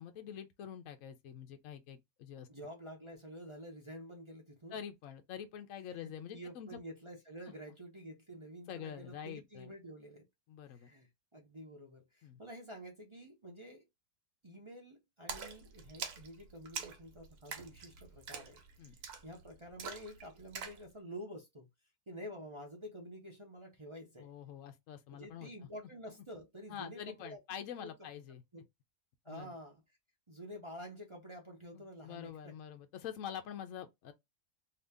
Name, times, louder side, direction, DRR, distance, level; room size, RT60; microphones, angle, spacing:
voice 1, 0.0-2.5 4.7-6.8 8.7-9.7 10.5-10.9 12.2-12.4 18.8-19.0 24.2-25.5 26.7-28.4 29.3-29.5 32.0-34.1, left 9 dB, 65° left, 1.0 m, -46 dB
voice 2, 2.5-4.8 5.9-10.3 10.7-13.8 14.4-18.6 19.2-21.7 22.1-24.3 25.1-27.4 27.8-27.9 28.5-28.6 29.2-29.8 30.3-32.5, equal, 35° right, 0.4 m, -49 dB
Splash splatter, 15.3-20.8, right 6 dB, 75° right, 1.2 m, -45 dB
2.9 x 2.8 x 3.4 m
omnidirectional pair, 1.7 m